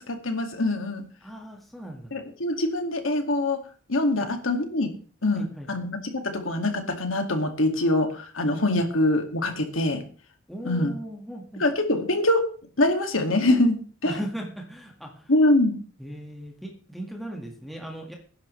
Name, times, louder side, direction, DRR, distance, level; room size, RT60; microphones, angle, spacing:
voice 1, 0.1-1.0 2.1-3.6 3.9-4.9 5.2-10.0 10.6-10.9 11.6-12.5 12.8-14.1 15.3-15.8, left 1 dB, 75° left, 4 dB, 2.3 m, -24 dB
voice 2, 1.2-2.1 4.2-4.3 5.4-5.7 8.7-8.8 10.5-11.6 11.9-12.0 14.1-15.3 16.0-18.1, right 1 dB, ahead, 0 dB, 1.8 m, -38 dB
19.0 x 10.5 x 3.3 m, 0.40 s
head